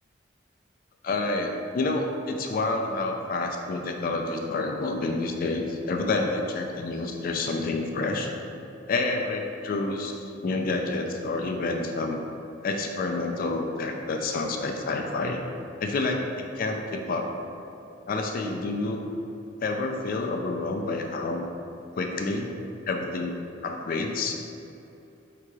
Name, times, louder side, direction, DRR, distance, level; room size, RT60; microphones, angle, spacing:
voice 1, 1.0-8.3 8.9-12.2 12.6-15.4 15.8-17.3 18.1-19.0 19.6-21.4 22.0-22.5 22.9-23.3 23.6-24.3, left 3 dB, 50° left, 3 dB, 0.3 m, -28 dB
3.6 x 2.9 x 4.7 m, 2.8 s
head